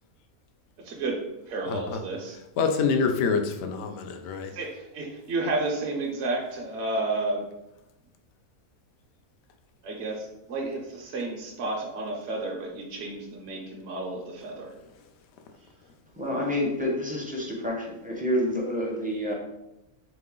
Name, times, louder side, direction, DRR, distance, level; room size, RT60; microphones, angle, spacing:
voice 1, 0.8-2.4 4.5-7.4 9.8-14.7, right 2 dB, 55° right, 0 dB, 0.9 m, -31 dB
voice 2, 1.7-2.0 2.6-4.5, left 5 dB, 65° left, 5 dB, 0.7 m, -26 dB
voice 3, 16.1-19.3, left 1 dB, 10° right, -3 dB, 0.6 m, -28 dB
3.7 x 3.1 x 3.6 m, 0.89 s
omnidirectional pair, 1.4 m